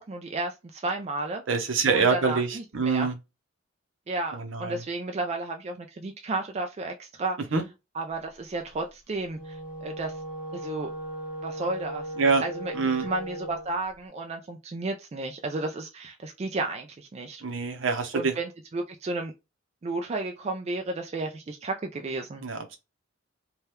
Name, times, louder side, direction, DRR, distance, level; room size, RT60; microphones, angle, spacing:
voice 1, 0.0-1.4 1.9-3.1 4.1-7.4 7.9-10.2 10.5-10.9 11.4-12.1 12.4-12.7 13.0-17.4 18.1-19.3 19.8-22.4, right 2 dB, 30° right, 0.3 m, -32 dB
voice 2, 1.5-3.1 4.3-4.8 7.5-7.6 12.2-12.4 12.7-13.1 17.4-18.3 22.4-22.8, right 4 dB, 70° right, 0.7 m, -25 dB
Wind instrument woodwind instrument, 9.2-13.7, right 1 dB, 10° right, 0.9 m, -37 dB
2.8 x 2.3 x 3.3 m
head